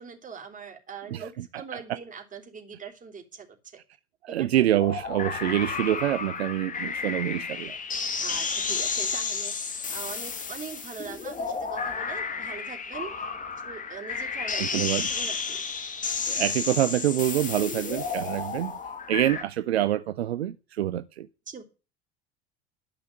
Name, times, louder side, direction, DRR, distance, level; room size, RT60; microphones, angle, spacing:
voice 1, 0.0-3.8 4.3-4.7 8.2-13.3 13.6-15.6 21.5-21.6, right 6 dB, 25° right, 3.6 m, -42 dB
voice 2, 1.1-1.8 4.2-7.8 14.6-15.1 16.3-18.8 19.1-21.3, right 13 dB, 70° right, 0.6 m, -26 dB
sound 1, 4.8-19.4, left 5 dB, 25° left, 1.8 m, -32 dB
12.5 x 5.7 x 8.6 m
figure-of-eight pair, 70°, 33 cm